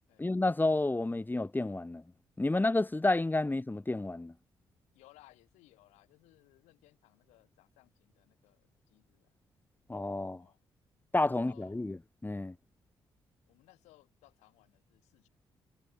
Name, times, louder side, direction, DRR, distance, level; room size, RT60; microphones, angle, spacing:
voice 1, 0.2-2.0 2.4-4.3 9.9-10.4 11.1-12.0 12.2-12.5, left 2 dB, 15° left, 1.1 m, -30 dB
voice 2, 4.9-9.3 10.4-10.6 11.3-12.0 13.5-15.3, left 19 dB, 75° left, 4.4 m, -63 dB
hypercardioid pair, 40°, 12 cm